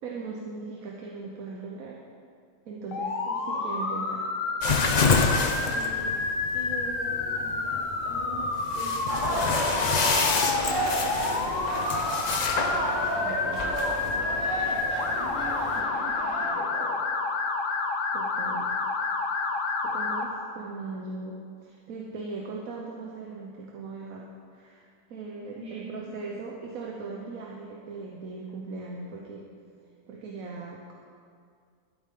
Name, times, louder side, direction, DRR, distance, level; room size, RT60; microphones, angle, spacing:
voice 1, 0.0-2.0 2.6-3.2 3.5-4.2 13.1-13.6 18.1-18.7 19.8-29.5 30.1-31.0, right 3 dB, 85° right, -2 dB, 1.4 m, -39 dB
Motor vehicle (road) / Siren, 2.9-20.2, left 3 dB, 75° left, 1.3 m, -29 dB
voice 2, 3.2-3.7 5.6-6.2 6.5-9.9 11.2-12.0 12.6-17.0 25.6-26.2, equal, 70° right, -7 dB, 3.3 m, -42 dB
sound 1, 4.6-15.8, left 4 dB, 40° left, 0.7 m, -29 dB
sound 2, 9.1-16.5, right 1 dB, 35° right, 1.9 m, -32 dB
12.0 x 9.8 x 3.8 m, 2.3 s
omnidirectional pair, 1.4 m